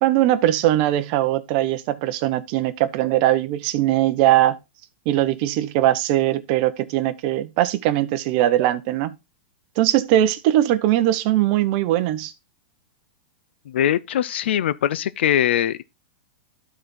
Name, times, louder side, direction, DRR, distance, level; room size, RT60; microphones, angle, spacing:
voice 1, 0.0-4.6 5.1-9.2 9.8-12.3, right 13 dB, 50° right, 0.8 m, -20 dB
voice 2, 13.7-15.8, left 10 dB, 75° left, 0.5 m, -21 dB
12.0 x 4.1 x 3.8 m
hypercardioid pair, 130°, 6 cm